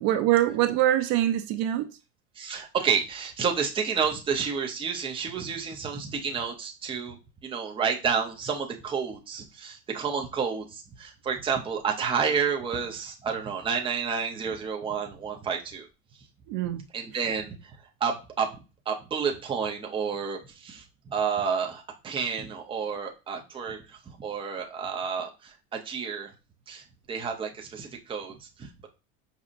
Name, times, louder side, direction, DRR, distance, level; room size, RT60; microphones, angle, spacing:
voice 1, 0.0-1.9 16.5-16.8 17.1-17.2, right 13 dB, 65° right, 0.5 m, -24 dB
voice 2, 2.4-7.2 7.4-15.9 16.9-17.7 18.0-18.6 18.9-26.3 26.7-28.9, right 6 dB, 15° right, 0.6 m, -30 dB
5.0 x 2.8 x 2.5 m
cardioid pair, 150°, 31 cm